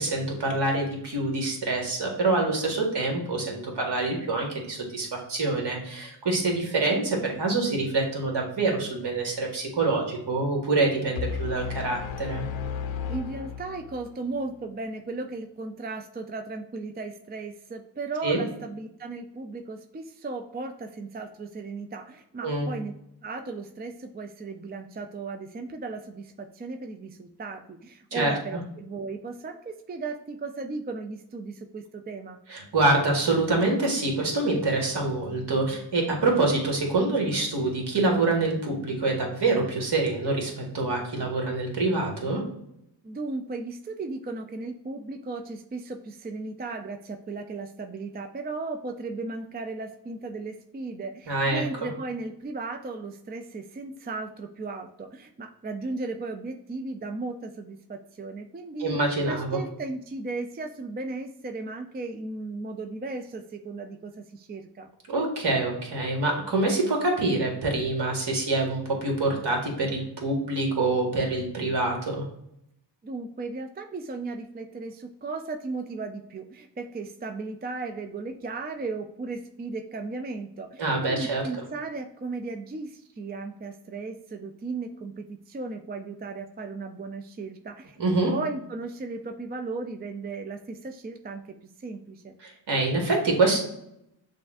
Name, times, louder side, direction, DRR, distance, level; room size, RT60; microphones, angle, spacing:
voice 1, 0.0-12.4 18.2-18.4 22.4-22.7 28.1-28.3 32.5-42.4 51.3-51.9 58.8-59.6 65.1-72.2 80.8-81.4 88.0-88.3 92.4-93.6, right 2 dB, 65° right, 1 dB, 1.5 m, -26 dB
sound 1, 11.2-14.2, left 7 dB, 90° left, 0.5 m, -34 dB
voice 2, 13.1-22.9 23.2-32.4 43.0-59.0 59.2-64.9 73.0-88.0 88.3-92.4, right 3 dB, 25° right, 5 dB, 0.4 m, -36 dB
6.7 x 2.4 x 2.5 m, 0.78 s
cardioid pair, 75°, 45 cm